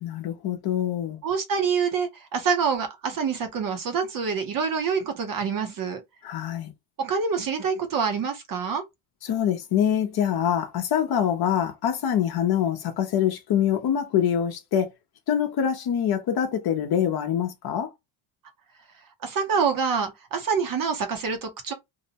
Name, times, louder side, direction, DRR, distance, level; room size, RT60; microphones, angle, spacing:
voice 1, 0.0-1.2 6.2-6.7 9.2-14.9 15.3-17.9, left 9 dB, 50° left, 0.7 m, -25 dB
voice 2, 1.2-6.0 7.0-8.8 19.2-21.7, right 6 dB, 45° right, 0.7 m, -26 dB
2.7 x 2.1 x 2.7 m
cardioid pair, 145°, 50 cm